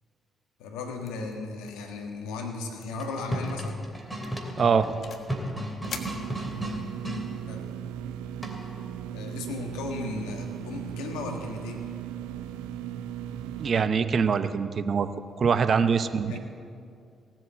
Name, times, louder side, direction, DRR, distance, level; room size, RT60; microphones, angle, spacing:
voice 1, 0.6-3.8 7.5-7.7 9.1-11.9 16.3-16.4, left 3 dB, 80° left, 3 dB, 1.6 m, -36 dB
sound 1, 1.0-1.3 1.6-1.9 2.2-2.3 2.8-3.1 3.5-3.7 4.2-5.4 5.9-6.9, left 5 dB, 60° left, 1.4 m, -43 dB
sound 2, 2.9-7.2 8.4-8.8, equal, 5° right, 2.9 m, -34 dB
voice 2, 4.6-4.9 13.6-15.1 15.4-16.4, right 6 dB, 55° right, 11 dB, 0.8 m, -23 dB
sound 3, 5.9-13.9, right 10 dB, 80° right, 0.5 m, -37 dB
17.5 x 7.6 x 8.4 m, 2.4 s
hypercardioid pair, 45°, 0 cm